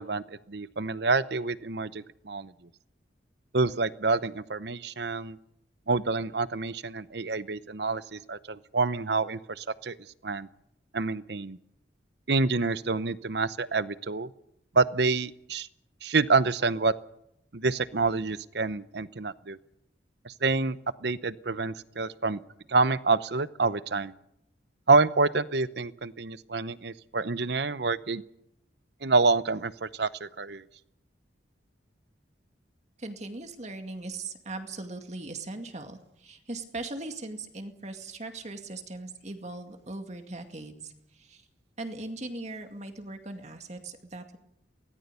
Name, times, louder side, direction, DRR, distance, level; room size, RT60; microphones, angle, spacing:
voice 1, 0.0-2.5 3.5-5.4 5.9-10.0 10.2-10.5 10.9-11.6 12.3-14.3 14.7-15.7 16.0-16.9 17.5-19.6 20.2-22.4 22.7-24.1 24.9-28.2 29.0-30.6, right 3 dB, 60° right, 16 dB, 0.8 m, -27 dB
voice 2, 33.0-41.4 41.8-44.4, right 2 dB, 40° right, 6 dB, 2.3 m, -39 dB
24.0 x 18.5 x 6.9 m, 0.79 s
head